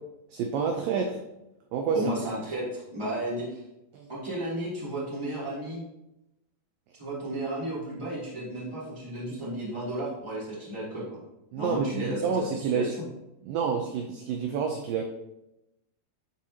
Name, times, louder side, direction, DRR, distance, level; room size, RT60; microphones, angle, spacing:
voice 1, 0.3-1.2 1.7-2.0 3.9-4.1 11.5-13.0 13.4-15.0, right 6 dB, 80° right, 3 dB, 2.1 m, -28 dB
voice 2, 1.9-3.6 4.1-5.8 7.0-11.2 11.5-13.0, right 1 dB, 10° right, -8 dB, 2.1 m, -33 dB
12.0 x 4.5 x 2.8 m, 0.90 s
omnidirectional pair, 4.6 m